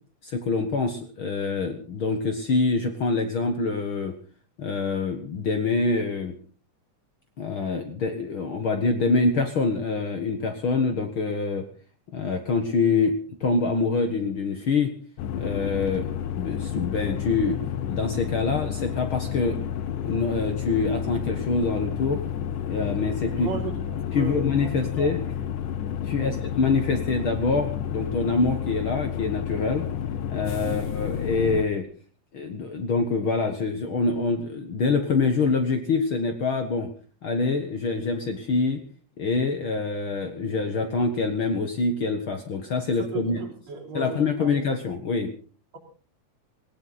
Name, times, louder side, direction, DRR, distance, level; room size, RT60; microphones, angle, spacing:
voice 1, 0.2-4.1 4.6-6.4 7.4-11.6 12.1-14.9 15.3-17.6 17.9-19.6 20.0-22.2 22.7-23.5 24.1-25.2 26.0-29.9 30.3-31.9 32.3-36.9 37.2-38.8 39.2-43.4 43.9-45.3, left 4 dB, 50° left, 6 dB, 1.9 m, -25 dB
sound 1, 15.2-31.7, left 9 dB, 85° left, 2.5 m, -30 dB
voice 2, 23.4-23.8 24.1-25.1 26.2-26.4 30.6-30.8 42.9-44.5, right 4 dB, 60° right, -1 dB, 4.7 m, -35 dB
19.0 x 17.0 x 4.0 m, 0.40 s
omnidirectional pair, 3.6 m